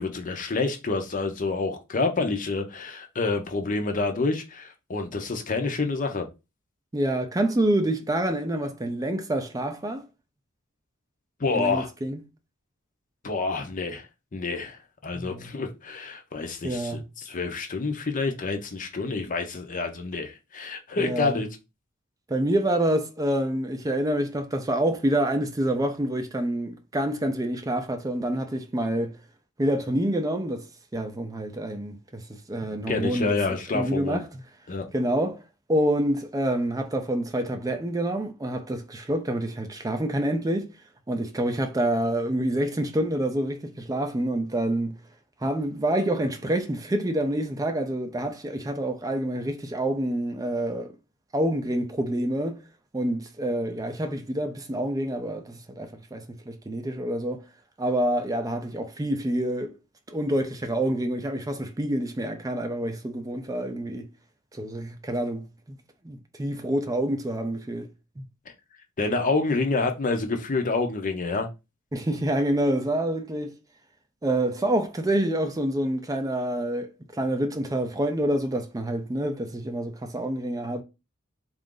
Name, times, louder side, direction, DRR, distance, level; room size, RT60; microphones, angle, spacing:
voice 1, 0.0-6.3 11.4-11.9 13.2-14.1 14.3-21.5 32.9-34.2 34.7-34.8 69.0-71.5, left 3 dB, 40° left, 0.6 m, -28 dB
voice 2, 6.9-10.0 11.5-12.2 15.1-15.5 16.6-17.1 21.0-21.4 22.3-29.2 29.6-30.7 30.9-34.3 34.9-35.4 35.7-40.7 41.1-45.0 45.4-50.9 51.3-52.6 52.9-57.4 57.8-59.8 60.1-64.1 64.5-65.8 66.0-67.9 68.2-68.3 71.9-73.5 74.2-80.8, right 1 dB, 15° right, 0.4 m, -27 dB
3.8 x 2.4 x 3.7 m
head